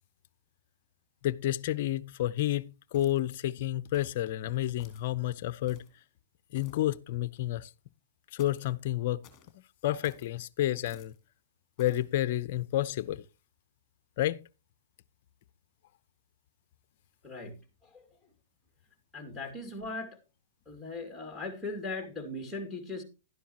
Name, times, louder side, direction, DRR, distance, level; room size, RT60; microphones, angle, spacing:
voice 1, 1.2-2.6 2.9-5.8 6.5-7.7 8.3-9.2 9.8-11.1 11.8-13.2 14.2-14.4, left 13 dB, 50° left, 0.5 m, -30 dB
sound 1, 2.9-3.4 3.9-4.2 4.8-5.1 5.7-6.0 6.5-6.9 8.4-8.7 9.2-9.5 10.0-10.3 10.9-11.2 11.8-12.1, left 9 dB, 25° left, 2.9 m, -55 dB
voice 2, 19.1-20.2 20.7-23.0, left 2 dB, 5° left, 2.4 m, -38 dB
12.0 x 10.0 x 2.9 m
hypercardioid pair, 140°, 0 cm